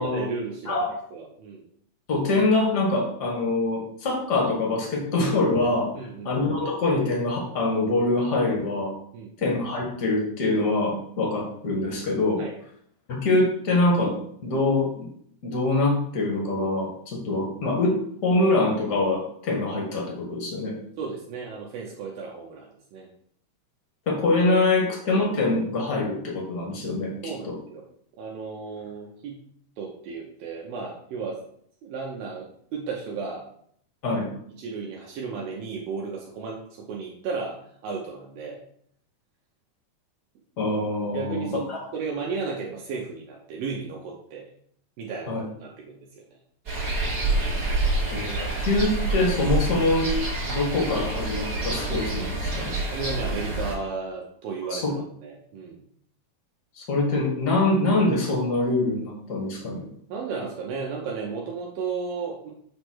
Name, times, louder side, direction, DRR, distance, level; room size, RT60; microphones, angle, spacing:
voice 1, 0.0-1.6 5.9-6.3 8.5-8.6 9.1-9.3 12.4-12.6 21.0-23.1 27.2-27.8 28.2-29.4 29.8-31.4 31.8-33.5 34.1-34.2 34.5-38.6 41.1-41.7 41.9-44.5 45.0-46.2 52.9-55.8 60.1-62.5, right 5 dB, 75° right, -1 dB, 2.7 m, -34 dB
voice 2, 2.1-5.9 6.2-8.9 9.4-12.4 13.1-14.2 14.4-15.1 15.4-20.7 24.1-27.1 27.4-27.5 34.0-34.3 40.6-41.8 45.3-45.4 48.1-50.1 50.5-52.8 54.7-54.9 56.8-59.8, left 2 dB, 65° left, -1 dB, 1.0 m, -24 dB
sound 1, 46.7-53.8, right 2 dB, 35° right, 1.6 m, -27 dB
7.1 x 3.4 x 6.2 m, 0.64 s
omnidirectional pair, 4.3 m